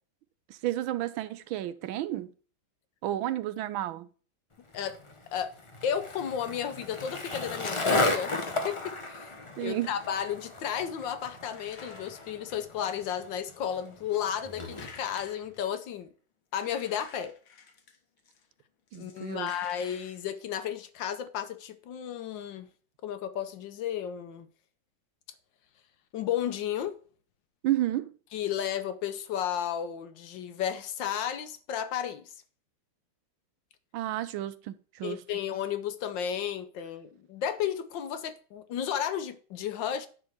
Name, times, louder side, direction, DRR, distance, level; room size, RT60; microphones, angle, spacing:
voice 1, 0.5-2.3 3.0-4.1 9.6-9.9 18.9-19.5 27.6-28.1 33.9-35.2, right 14 dB, 80° right, 1.4 m, -31 dB
Skateboard, 4.7-15.3, left 2 dB, 50° left, 0.3 m, -34 dB
voice 2, 5.8-9.3 9.6-16.1 16.5-17.3 18.9-22.7 23.0-24.5 26.1-26.9 28.3-32.3 35.0-40.1, left 9 dB, 70° left, 1.5 m, -33 dB
sound 1, 11.5-13.2 13.5-13.7 14.7-16.0 16.5-18.4 18.9-20.2, left 6 dB, 85° left, 2.1 m, -52 dB
10.5 x 3.8 x 6.5 m
omnidirectional pair, 2.2 m